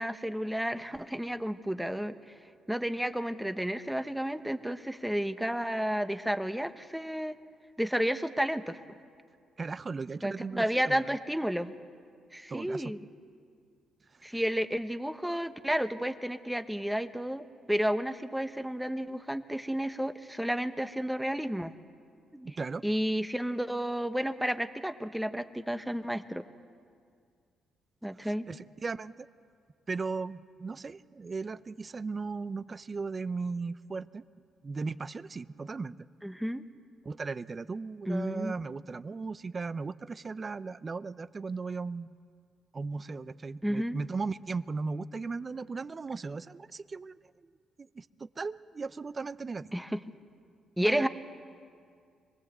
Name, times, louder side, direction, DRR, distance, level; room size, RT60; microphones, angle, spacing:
voice 1, 0.0-2.2 2.7-7.4 7.8-8.8 10.2-11.7 12.3-13.0 14.2-21.7 22.3-22.5 22.8-26.4 28.0-28.5 36.2-36.6 38.1-38.5 43.6-44.0 49.7-50.0 50.8-51.1, equal, 5° right, 10 dB, 1.1 m, -31 dB
voice 2, 9.6-11.1 12.5-12.8 14.3-14.4 22.4-22.8 28.2-29.3 29.9-34.2 34.6-36.0 37.0-42.2 42.7-47.2 47.8-49.7 50.8-51.1, right 4 dB, 35° right, 16 dB, 0.6 m, -37 dB
25.5 x 19.0 x 8.0 m, 2.2 s
cardioid pair, 90°, 0 cm